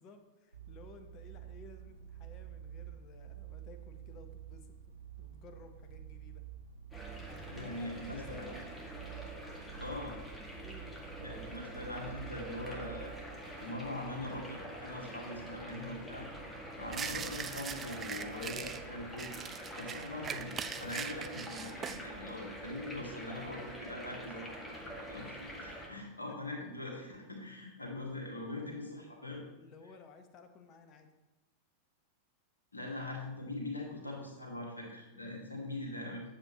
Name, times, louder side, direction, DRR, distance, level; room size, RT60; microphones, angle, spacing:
voice 1, 0.0-6.4 7.2-8.6 10.6-11.1 26.3-26.4 29.6-31.1, left 4 dB, 35° left, 7 dB, 1.0 m, -56 dB
sound 1, 0.5-13.3, right 10 dB, 75° right, 0.6 m, -49 dB
sound 2, 6.9-25.9, right 1 dB, 10° left, 2.0 m, -46 dB
voice 2, 7.5-8.5 9.8-10.2 11.2-13.1 13.6-16.3 16.7-19.3 19.7-29.4 32.7-36.2, left 1 dB, 80° left, -1 dB, 1.9 m, -42 dB
sound 3, 16.9-18.8 19.2-22.0, right 7 dB, 25° right, 0.5 m, -41 dB
10.0 x 7.1 x 3.0 m, 1.0 s
figure-of-eight pair, 90°, 0 cm